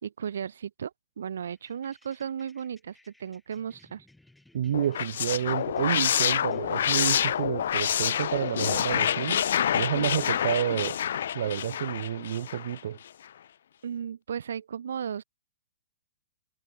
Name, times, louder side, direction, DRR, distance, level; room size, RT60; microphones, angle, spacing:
voice 1, 0.0-4.1 13.8-15.2, right 8 dB, 70° right, 4.6 m, -35 dB
sound 1, 1.5-12.1, left 1 dB, ahead, 7.7 m, -61 dB
voice 2, 4.5-9.4 9.7-11.0 11.3-13.0, right 10 dB, 50° right, 2.2 m, -29 dB
sound 2, 4.7-12.8, left 9 dB, 55° left, 0.4 m, -27 dB
hypercardioid pair, 175°, 0 cm